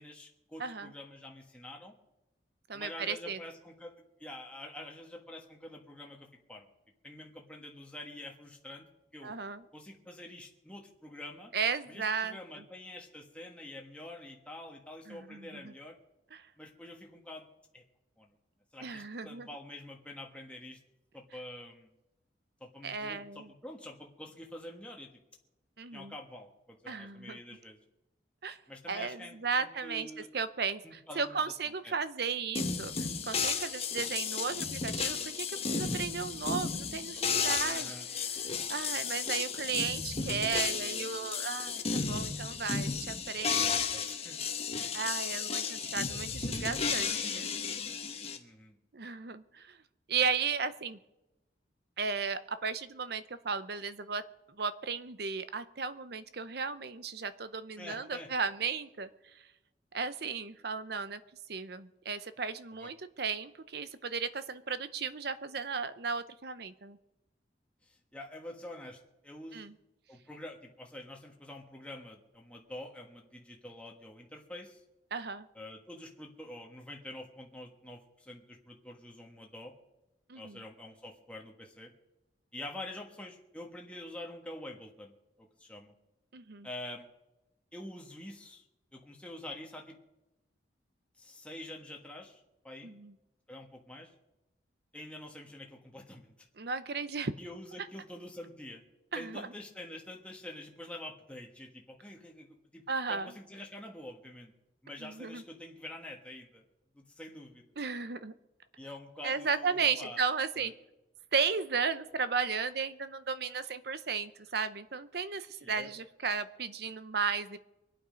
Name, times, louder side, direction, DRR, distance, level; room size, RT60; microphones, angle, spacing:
voice 1, 0.0-1.9 2.7-6.7 7.0-9.3 9.7-11.5 11.9-16.0 16.6-17.5 17.7-17.8 18.2-18.3 18.7-20.8 21.1-21.9 22.6-25.1 25.9-27.8 28.7-30.3 30.8-31.4 31.8-31.9 37.6-38.1 43.4-44.4 45.6-45.7 48.4-48.8 57.8-58.3 62.8-62.9 67.8-69.7 70.1-74.8 75.5-79.7 80.3-81.9 82.5-85.9 86.6-87.0 87.7-88.6 88.9-90.0 91.2-92.9 93.5-94.1 94.9-96.3 97.3-98.8 99.1-102.8 103.1-104.5 104.8-106.6 106.9-107.6 108.8-110.3 110.6-110.7 115.6-115.9, left 1 dB, 5° left, 0 dB, 1.4 m, -47 dB
voice 2, 0.6-0.9 2.7-3.4 9.2-9.6 11.5-12.4 15.1-15.7 16.3-16.5 18.8-19.5 22.8-23.5 25.8-26.1 26.9-27.4 28.4-28.6 28.9-37.9 38.7-43.8 44.9-47.5 48.9-49.8 50.1-51.0 52.0-54.2 54.6-59.5 59.9-61.2 61.5-67.0 69.5-69.7 75.1-75.5 80.3-80.6 86.3-86.7 92.8-93.1 96.6-97.3 99.1-99.5 102.9-103.3 105.0-105.4 107.8-108.3 109.2-110.7 111.3-117.6, right 5 dB, 55° right, 13 dB, 0.8 m, -35 dB
sound 1, 32.5-48.4, left 5 dB, 35° left, 1.2 m, -33 dB
24.5 x 8.8 x 5.2 m, 0.95 s
head